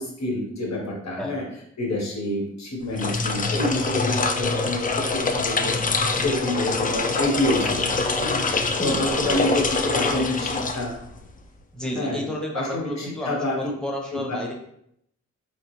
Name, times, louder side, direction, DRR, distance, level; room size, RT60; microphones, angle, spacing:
voice 1, 0.2-0.8 1.0-1.4 1.8-2.4 2.8-4.9 5.3-5.7 6.2-8.4 8.8-9.6 9.9-10.5 10.7-10.9 11.9-12.2 12.5-13.6 14.1-14.4, left 1 dB, 60° left, -1 dB, 1.3 m, -27 dB
sound 1, 2.8-11.3, left 3 dB, 30° left, 0.4 m, -25 dB
voice 2, 8.8-9.4 9.8-10.3 11.7-14.5, left 1 dB, ahead, 0 dB, 0.9 m, -31 dB
4.0 x 3.0 x 3.1 m, 0.73 s
cardioid pair, 80°, 30 cm